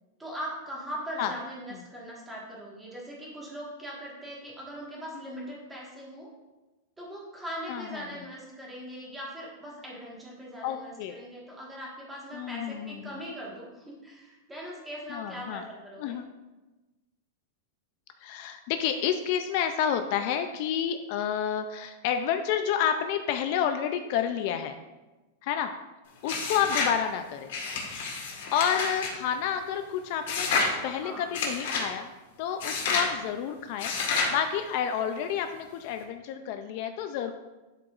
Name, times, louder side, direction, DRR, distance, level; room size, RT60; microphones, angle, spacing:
voice 1, 0.2-6.3 7.0-16.2 30.7-31.3, equal, 10° right, -4 dB, 1.6 m, -40 dB
voice 2, 7.7-8.0 10.6-11.2 12.3-13.0 15.1-15.6 16.0-16.3 18.2-24.8 25.4-25.7 26.2-27.5 28.5-30.5 30.8-32.1 32.4-37.3, left 8 dB, 50° left, 8 dB, 0.4 m, -29 dB
sound 1, 26.3-27.0 27.5-29.1 30.3-30.7 31.3-31.9 32.6-33.1 33.8-34.4, left 4 dB, 65° left, 1.6 m, -29 dB
11.0 x 4.8 x 2.5 m, 1.1 s
supercardioid pair, 160°, 0 cm